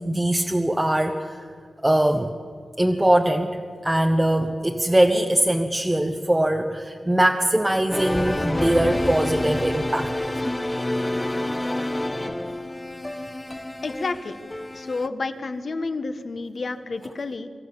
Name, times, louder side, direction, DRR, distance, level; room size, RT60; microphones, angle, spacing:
voice 1, 0.1-1.3 1.8-2.3 2.8-3.5 3.8-10.1, right 1 dB, 10° right, 3 dB, 1.1 m, -21 dB
sound 1, 7.9-15.1, left 1 dB, 15° left, 0.9 m, -28 dB
voice 2, 13.8-14.4 14.7-17.5, left 3 dB, 50° left, 10 dB, 1.4 m, -30 dB
26.5 x 14.0 x 7.6 m, 2.2 s
wide cardioid pair, 100°, 0 cm